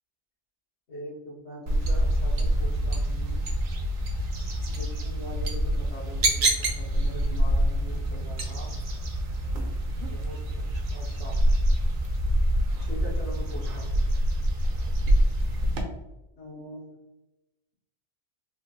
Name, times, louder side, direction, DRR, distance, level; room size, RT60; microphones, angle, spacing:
voice 1, 0.9-3.5 4.7-8.7 10.0-11.4 12.8-13.9 16.4-17.0, equal, 75° left, -4 dB, 1.5 m, -42 dB
sound 1, 1.7-15.8, right 1 dB, 55° right, 0.7 m, -26 dB
3.6 x 2.4 x 2.7 m, 0.97 s
omnidirectional pair, 1.2 m